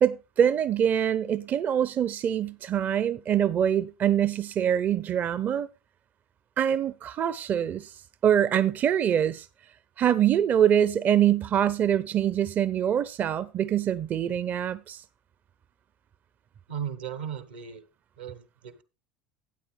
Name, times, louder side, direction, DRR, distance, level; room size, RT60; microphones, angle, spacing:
voice 1, 0.0-5.7 6.6-7.9 8.2-9.5 10.0-15.0, right 9 dB, 40° right, 0.5 m, -24 dB
voice 2, 16.7-17.8 18.2-18.8, right 8 dB, 85° right, 1.3 m, -36 dB
12.5 x 8.7 x 3.2 m
hypercardioid pair, 75°, 5 cm